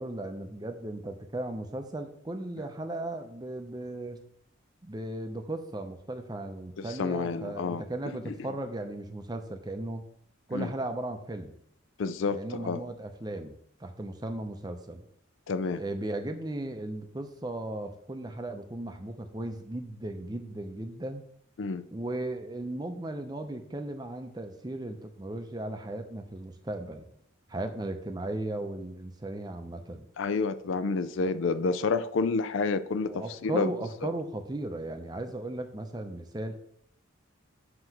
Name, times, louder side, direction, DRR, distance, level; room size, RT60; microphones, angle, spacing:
voice 1, 0.0-4.2 4.8-10.1 10.5-11.5 12.3-15.0 15.8-21.2 21.9-27.1 27.5-30.1 31.2-31.3 33.1-36.6, right 1 dB, 20° right, 0.5 m, -36 dB
voice 2, 6.8-8.4 10.5-10.7 12.0-12.8 15.5-15.8 21.6-21.8 30.2-33.7, left 4 dB, 65° left, 0.4 m, -29 dB
7.7 x 3.0 x 5.9 m
head